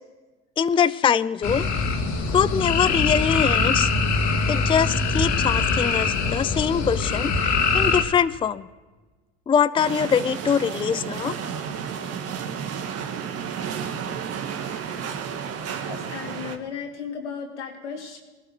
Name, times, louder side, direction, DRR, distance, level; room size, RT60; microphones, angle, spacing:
voice 1, 0.6-1.7 2.3-3.9 4.5-8.7 9.5-11.4, left 7 dB, 15° left, 15 dB, 0.5 m, -23 dB
sound 1, 1.4-8.0, left 4 dB, 55° left, 2.1 m, -23 dB
sound 2, 9.8-16.6, right 7 dB, 45° right, 1.8 m, -32 dB
voice 2, 15.9-18.2, left 6 dB, 85° left, 2 dB, 2.7 m, -35 dB
19.0 x 12.0 x 6.1 m, 1.3 s
hypercardioid pair, 80°, 34 cm